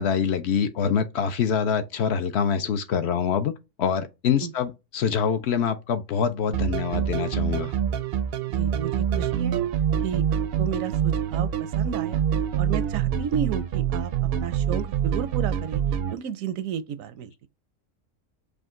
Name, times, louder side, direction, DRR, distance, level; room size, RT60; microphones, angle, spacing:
voice 1, 0.0-7.7, left 7 dB, 65° left, 0.7 m, -25 dB
sound 1, 6.5-16.1, right 9 dB, 65° right, 0.6 m, -26 dB
voice 2, 8.5-9.5 10.0-12.2 12.6-14.1 14.4-15.8 16.1-17.3, right 8 dB, 85° right, 1.0 m, -32 dB
5.0 x 2.3 x 3.6 m
omnidirectional pair, 1.4 m